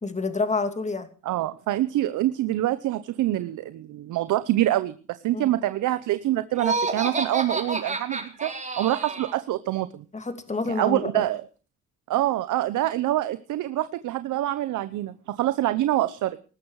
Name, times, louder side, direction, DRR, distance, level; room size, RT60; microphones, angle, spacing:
voice 1, 0.0-1.1 5.3-5.5 10.1-11.2, left 3 dB, 25° left, 8 dB, 2.8 m, -28 dB
voice 2, 1.2-10.0 10.6-11.4 12.1-16.4, right 14 dB, 80° right, 13 dB, 0.9 m, -26 dB
Laughter, 6.5-9.4, right 3 dB, 25° right, 4.0 m, -29 dB
19.0 x 14.0 x 4.8 m, 0.38 s
cardioid pair, 90°, 30 cm